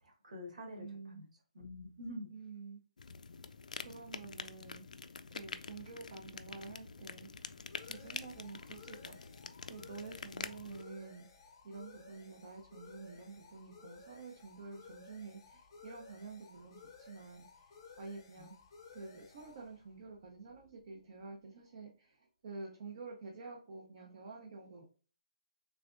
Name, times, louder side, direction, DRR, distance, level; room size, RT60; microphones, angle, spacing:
voice 1, 0.0-2.3 18.4-18.5, left 1 dB, 80° right, 1 dB, 1.8 m, -47 dB
voice 2, 0.8-1.2 2.3-2.8 3.8-5.0 5.3-7.5 7.8-9.2 9.6-17.7 18.0-18.5 18.9-24.8, right 4 dB, 40° right, 0 dB, 0.7 m, -49 dB
sound 1, 3.0-10.8, left 5 dB, 85° left, 0.3 m, -47 dB
sound 2, 5.9-21.2, left 4 dB, 30° left, 0.6 m, -58 dB
3.4 x 3.3 x 2.5 m, 0.38 s
hypercardioid pair, 170°, 4 cm